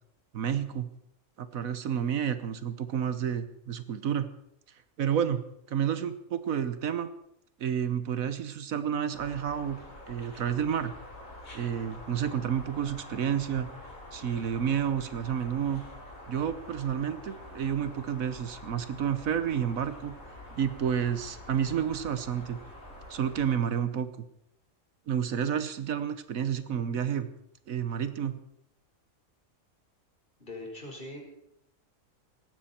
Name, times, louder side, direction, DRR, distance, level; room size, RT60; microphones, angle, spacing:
voice 1, 0.3-0.9 1.4-4.3 5.0-7.1 7.6-9.8 10.1-10.9 11.5-13.7 14.1-15.8 16.3-20.1 20.5-22.6 23.1-24.1 25.1-27.3 27.7-28.4, right 8 dB, 75° right, 11 dB, 1.4 m, -30 dB
sound 1, 9.1-23.6, left 1 dB, 75° left, 6.2 m, -47 dB
voice 2, 30.4-31.2, left 2 dB, 40° left, -1 dB, 5.0 m, -41 dB
18.5 x 15.0 x 4.4 m, 0.78 s
omnidirectional pair, 1.5 m